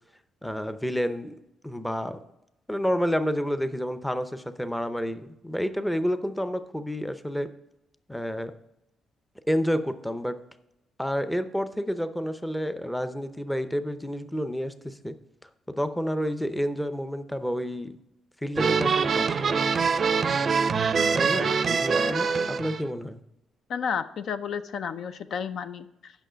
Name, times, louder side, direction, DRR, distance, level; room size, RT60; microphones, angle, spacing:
voice 1, 0.4-1.4 1.6-2.2 2.7-7.5 8.1-8.5 9.5-10.4 11.0-15.2 15.7-18.0 18.4-19.6 21.1-23.2, equal, 5° left, 10 dB, 0.6 m, -29 dB
sound 1, 18.6-22.8, right 5 dB, 40° right, 0.5 m, -24 dB
voice 2, 21.2-21.6 22.0-22.5 23.7-26.1, left 7 dB, 65° left, 11 dB, 0.5 m, -33 dB
9.1 x 6.1 x 5.1 m, 0.86 s
cardioid pair, 110°, 0 cm